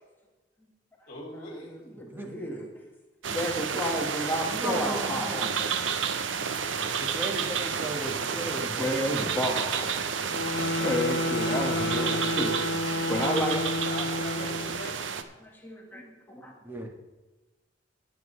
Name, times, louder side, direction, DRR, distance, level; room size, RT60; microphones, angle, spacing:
voice 1, 1.1-1.8 13.9-15.2, left 1 dB, 40° left, -1 dB, 2.8 m, -41 dB
voice 2, 1.6-2.7 3.3-6.0 8.8-9.9 10.7-12.6 13.1-13.6 15.4-16.5, equal, 10° left, -1 dB, 1.7 m, -31 dB
sound 1, 3.2-15.2, right 6 dB, 80° right, 0.8 m, -31 dB
voice 3, 4.5-5.5 7.0-9.0 16.6-16.9, right 1 dB, 10° right, 1 dB, 1.7 m, -35 dB
sound 2, 10.3-14.8, left 2 dB, 75° left, 0.7 m, -30 dB
19.5 x 7.7 x 3.3 m, 1.2 s
head